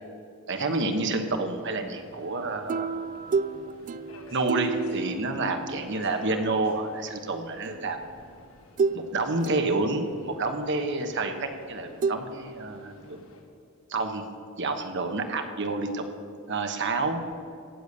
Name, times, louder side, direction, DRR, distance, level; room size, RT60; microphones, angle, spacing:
voice 1, 0.5-3.0 4.3-8.0 8.9-13.2 13.9-14.3 14.6-16.0 16.5-17.2, right 3 dB, 60° right, 6 dB, 1.2 m, -29 dB
Subway metro underground, 1.8-13.4, left 2 dB, 70° left, 1.7 m, -51 dB
sound 1, 2.7-6.3 7.7-7.8 8.8-9.1 9.4-10.3 12.0-12.2, right 4 dB, 40° right, 0.3 m, -30 dB
17.0 x 6.9 x 6.7 m, 2.6 s
head